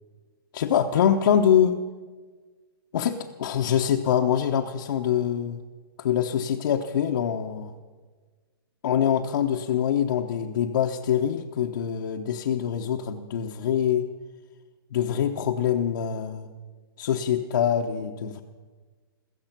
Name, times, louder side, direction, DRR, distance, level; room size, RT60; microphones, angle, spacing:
voice 1, 0.5-1.8 2.9-5.6 6.0-7.7 8.8-14.1 14.9-16.5 17.0-18.4, left 9 dB, 65° left, 1 dB, 1.1 m, -24 dB
16.0 x 14.5 x 6.0 m, 1.4 s
hypercardioid pair, 140°, 12 cm